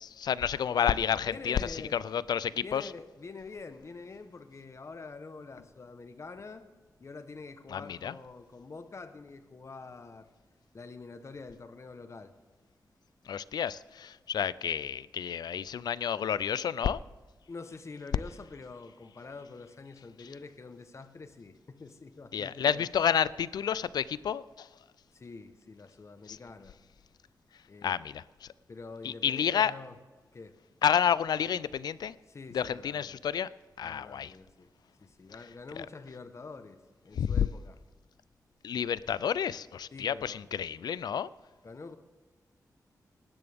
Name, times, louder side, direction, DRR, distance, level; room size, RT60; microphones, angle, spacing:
voice 1, 0.0-2.9 7.7-8.2 13.2-17.0 20.2-20.3 22.3-24.7 26.3-26.4 27.5-28.5 29.0-29.7 30.8-32.2 32.5-33.5 33.8-34.4 35.8-35.9 37.1-37.5 38.6-41.3, left 8 dB, 90° left, 0.4 m, -30 dB
voice 2, 1.2-2.0 2.6-6.7 7.0-10.3 10.7-12.3 17.5-22.8 25.1-26.8 27.7-28.0 28.7-29.9 30.3-30.6 32.3-33.2 33.8-34.7 35.0-37.8 39.9-40.5 41.6-42.0, left 4 dB, 45° left, 1.0 m, -46 dB
19.5 x 10.5 x 3.5 m
wide cardioid pair, 95°, 7 cm